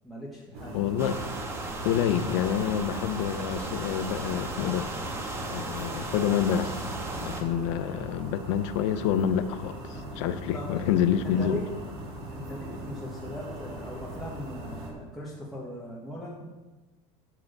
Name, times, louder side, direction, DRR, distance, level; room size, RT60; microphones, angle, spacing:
voice 1, 0.0-0.8 10.5-10.9 11.2-11.6 12.3-16.5, left 1 dB, ahead, -7 dB, 1.6 m, -39 dB
sound 1, 0.5-14.9, right 1 dB, 40° right, 3.2 m, -40 dB
voice 2, 0.7-1.2 1.8-4.9 5.5-6.8 7.1-11.6, left 9 dB, 85° left, 12 dB, 0.8 m, -27 dB
sound 2, 1.0-7.4, right 2 dB, 15° right, 1.4 m, -36 dB
13.0 x 4.9 x 6.7 m, 1.2 s
cardioid pair, 155°, 15 cm